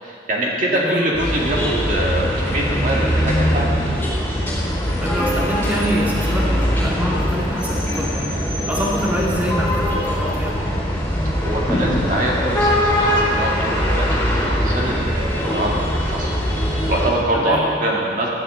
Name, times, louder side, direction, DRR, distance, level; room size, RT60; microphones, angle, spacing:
voice 1, 0.0-3.7 11.3-18.3, right 1 dB, 45° right, -3 dB, 2.1 m, -24 dB
voice 2, 0.7-1.0 5.0-10.6 17.3-17.6, equal, 10° right, -5 dB, 2.2 m, -25 dB
sound 1, 1.1-17.1, equal, 10° left, 4.2 m, -21 dB
19.0 x 13.5 x 3.9 m, 2.4 s
head